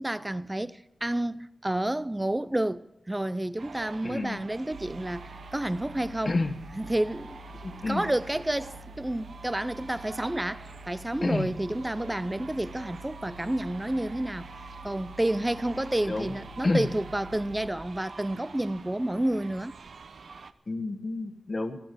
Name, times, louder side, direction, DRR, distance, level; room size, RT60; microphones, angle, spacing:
voice 1, 0.0-6.3 6.7-7.4 7.7-14.5 14.8-19.7, right 1 dB, 15° right, 0.5 m, -30 dB
sound 1, 3.6-20.5, right 5 dB, 70° right, 0.8 m, -47 dB
voice 2, 4.0-4.4 6.2-6.5 7.6-8.0 11.2-11.5 16.1-16.3 16.6-16.9 20.7-21.8, left 2 dB, 40° left, 1.4 m, -29 dB
sound 2, 4.7-17.7, equal, 50° right, 1.8 m, -48 dB
15.0 x 13.0 x 6.7 m
wide cardioid pair, 110°, 0 cm